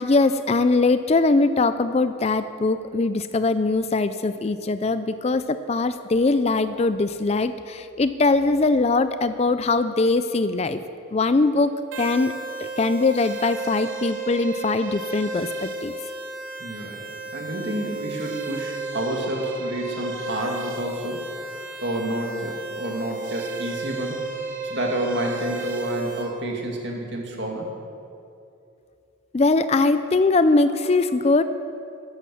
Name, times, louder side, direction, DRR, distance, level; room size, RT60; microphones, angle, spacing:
voice 1, 0.0-10.8 11.1-11.7 12.0-12.3 12.6-15.9 29.3-31.4, left 3 dB, 30° left, 12 dB, 0.4 m, -21 dB
sound 1, 11.9-26.2, right 3 dB, 75° right, 2.3 m, -33 dB
voice 2, 16.6-17.0 17.3-24.2 24.6-27.7, right 1 dB, 55° right, 0 dB, 2.4 m, -29 dB
12.0 x 11.5 x 7.1 m, 2.7 s
head